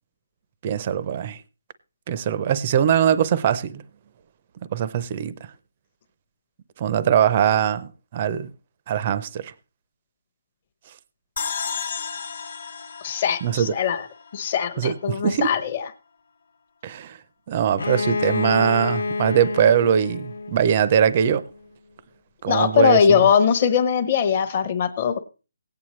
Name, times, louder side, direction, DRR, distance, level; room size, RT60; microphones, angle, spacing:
voice 1, 0.6-1.4 2.1-3.8 4.7-5.3 6.8-8.5 8.9-9.5 13.4-13.7 14.8-15.5 16.8-17.2 17.5-21.4 22.4-23.2, right 9 dB, 25° right, 0.5 m, -21 dB
sound 1, 11.4-14.7, left 6 dB, 40° left, 1.1 m, -33 dB
voice 2, 13.0-14.1 14.3-15.9 22.5-25.2, left 7 dB, 25° left, 0.8 m, -20 dB
Bowed string instrument, 17.8-21.4, left 3 dB, 60° left, 0.5 m, -28 dB
17.5 x 8.7 x 3.1 m
hypercardioid pair, 175°, 0 cm